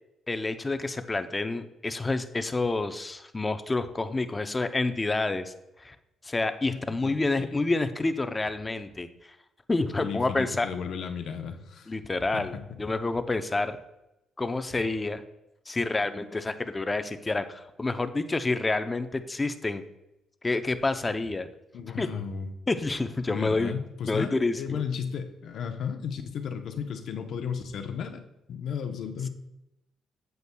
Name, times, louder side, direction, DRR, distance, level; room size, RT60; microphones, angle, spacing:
voice 1, 0.3-5.5 5.8-6.0 6.2-9.1 9.7-10.7 11.9-13.8 14.4-15.2 15.7-19.8 20.4-21.5 22.0-22.1 22.7-23.7 24.1-24.8, left 3 dB, 20° left, 9 dB, 0.6 m, -28 dB
voice 2, 6.7-7.5 10.0-12.0 12.3-12.6 21.7-22.5 23.3-28.2 28.5-29.3, left 7 dB, 70° left, 6 dB, 0.8 m, -34 dB
8.1 x 7.8 x 2.3 m, 0.88 s
cardioid pair, 90°, 0 cm